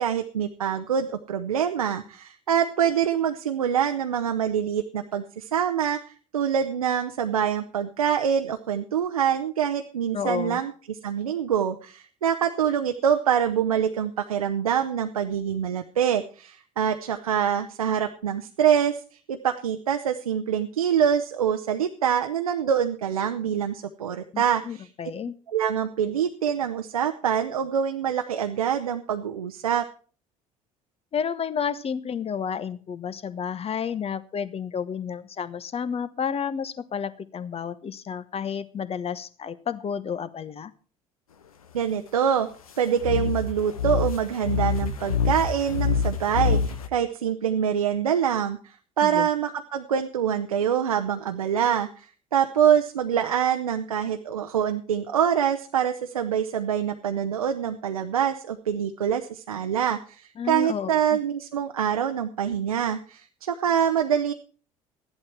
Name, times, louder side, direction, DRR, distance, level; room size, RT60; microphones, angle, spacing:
voice 1, 0.0-6.0 6.3-24.9 25.5-29.8 41.7-42.5 42.8-48.6 49.0-64.3, right 8 dB, 80° right, 6 dB, 0.7 m, -25 dB
voice 2, 10.1-10.6 24.3-25.4 31.1-40.7 49.0-49.3 60.4-61.2, left 7 dB, 35° left, 15 dB, 1.1 m, -31 dB
sound 1, 43.0-46.9, left 6 dB, 80° left, 0.9 m, -26 dB
14.5 x 11.5 x 4.4 m, 0.40 s
figure-of-eight pair, 55°, 18 cm